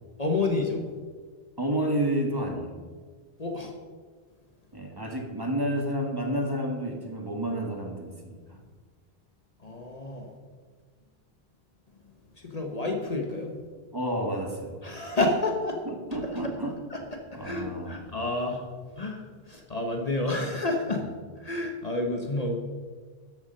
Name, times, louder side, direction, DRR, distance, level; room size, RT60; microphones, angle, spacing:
voice 1, 0.2-0.8 3.4-3.7 9.6-10.3 12.4-13.5 14.8-15.8 16.2-16.5 16.9-17.0 17.3-18.6 19.0-21.1 21.4-22.5, left 2 dB, 40° left, 2 dB, 1.2 m, -29 dB
voice 2, 1.6-2.8 4.7-8.6 13.9-14.8 15.8-16.7 17.3-18.0, right 1 dB, 20° right, 1 dB, 1.6 m, -30 dB
13.0 x 7.0 x 5.5 m, 1.5 s
omnidirectional pair, 1.0 m